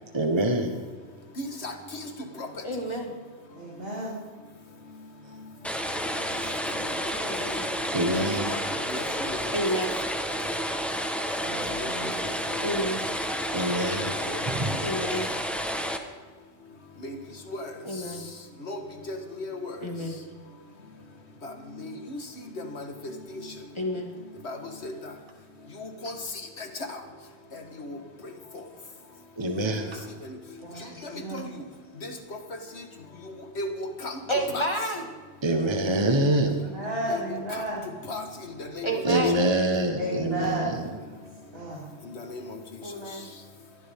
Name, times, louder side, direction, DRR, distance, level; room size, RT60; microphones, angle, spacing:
voice 1, 0.1-0.9 7.9-8.8 13.5-14.8 29.4-30.1 35.4-36.8 39.0-41.0, right 1 dB, 25° right, 4 dB, 1.2 m, -26 dB
voice 2, 1.4-2.1 2.4-2.5 8.3-9.4 11.6-11.9 12.2-12.6 13.6-13.7 14.3-14.8 17.0-17.2 17.5-17.7 18.7-19.8 21.4-22.2 22.6-23.4 24.4-25.1 25.8-26.2 26.6-27.0 27.5-28.0 28.5-28.6 29.6-29.7 30.2-30.4 31.0-31.5 32.0-32.4 33.2-34.7 37.1-37.6 38.1-38.3 38.6-39.0 42.2-42.6, left 2 dB, 65° left, 5 dB, 1.8 m, -37 dB
voice 3, 2.6-3.1 7.2-7.8 9.5-10.0 12.6-13.1 14.8-15.3 17.8-18.3 19.8-20.2 23.8-24.1 30.7-31.1 34.3-35.1 38.8-39.4 42.8-43.3, equal, 25° left, 1 dB, 2.0 m, -30 dB
voice 4, 3.5-4.2 11.4-12.1 30.6-31.5 36.7-37.8 40.0-40.8 41.5-41.9, right 1 dB, 55° right, -6 dB, 3.5 m, -33 dB
sound 1, 5.6-16.0, equal, ahead, 1.1 m, -30 dB
22.0 x 14.5 x 3.7 m, 1.5 s
omnidirectional pair, 1.2 m